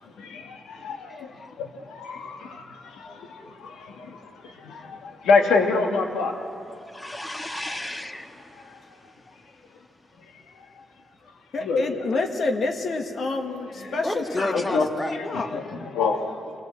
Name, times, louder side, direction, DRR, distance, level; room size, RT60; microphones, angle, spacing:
voice 1, 0.0-6.4 8.7-8.8 11.6-12.0 14.5-14.9 15.3-15.6 15.9-16.5, left 4 dB, 90° left, 4 dB, 1.7 m, -27 dB
voice 2, 1.1-1.5 6.7-9.6 14.0-15.2, left 1 dB, 15° left, 6 dB, 1.6 m, -33 dB
voice 3, 1.8-2.3 3.0-3.5 4.7-4.9 6.3-6.4 11.5-16.0, left 3 dB, 60° left, 5 dB, 1.7 m, -30 dB
26.0 x 17.0 x 7.6 m, 2.5 s
cardioid pair, 70°, 0 cm